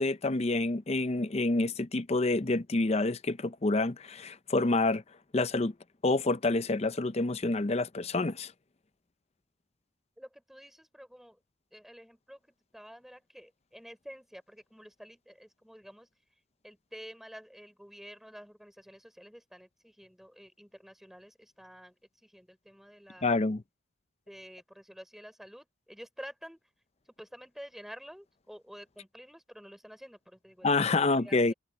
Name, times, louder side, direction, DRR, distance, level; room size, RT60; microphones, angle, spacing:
voice 1, 0.0-5.0 5.3-5.7 6.0-8.5 23.2-23.6 30.6-31.5, left 2 dB, 30° left, 0.6 m, -28 dB
voice 2, 10.2-11.4 11.7-16.1 16.6-22.0 22.2-23.6 24.3-26.6 27.2-31.5, equal, ahead, 4.0 m, -50 dB
open air
head